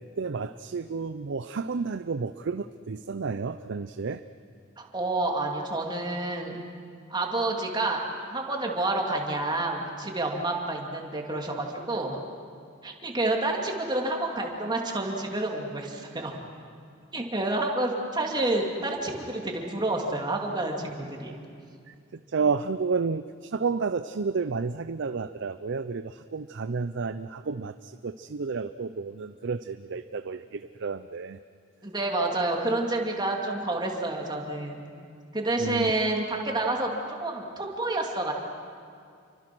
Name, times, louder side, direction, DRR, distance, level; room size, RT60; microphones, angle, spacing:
voice 1, 0.2-4.2 21.9-31.4 35.6-35.9, right 4 dB, 55° right, 11 dB, 0.5 m, -31 dB
voice 2, 4.8-6.6 7.1-8.0 8.3-12.2 12.8-16.3 17.1-21.4 31.8-34.9 35.3-36.9 37.2-38.3, right 2 dB, 20° right, 0 dB, 2.7 m, -29 dB
29.0 x 24.5 x 6.2 m, 2.3 s
head